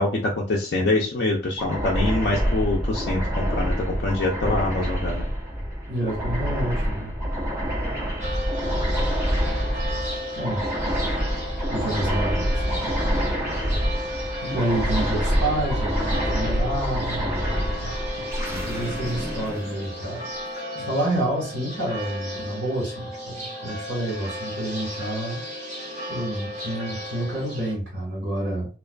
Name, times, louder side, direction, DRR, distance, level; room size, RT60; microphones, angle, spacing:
voice 1, 0.0-5.3 18.5-18.7 20.8-20.9, left 2 dB, 60° left, -2 dB, 0.4 m, -25 dB
sound 1, 1.6-20.4, equal, 20° right, 0.7 m, -27 dB
voice 2, 5.9-7.1 10.3-10.7 11.7-13.0 14.4-17.9 18.6-20.2 20.8-25.4 26.1-28.7, right 1 dB, 70° right, -5 dB, 1.4 m, -29 dB
sound 2, 8.2-27.7, equal, 40° right, 1.4 m, -34 dB
2.4 x 2.3 x 2.3 m, 0.35 s
head